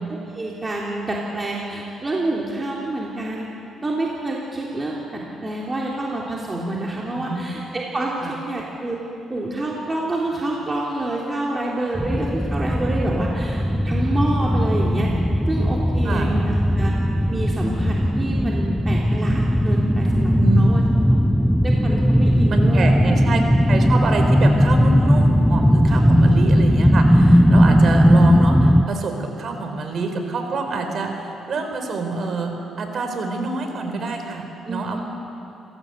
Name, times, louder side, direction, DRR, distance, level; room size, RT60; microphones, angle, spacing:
voice 1, 0.1-3.5 3.8-9.0 9.3-15.1 15.5-16.9 17.3-20.8 21.6-22.9 24.0-24.1 25.9-26.0 34.7-35.0, right 2 dB, 25° right, -4 dB, 3.5 m, -28 dB
sound 1, 12.0-28.8, equal, ahead, 0.7 m, -17 dB
voice 2, 22.5-23.4 23.7-35.0, right 3 dB, 55° right, 4 dB, 4.3 m, -27 dB
29.0 x 17.0 x 8.1 m, 2.9 s
cardioid pair, 90°, 0 cm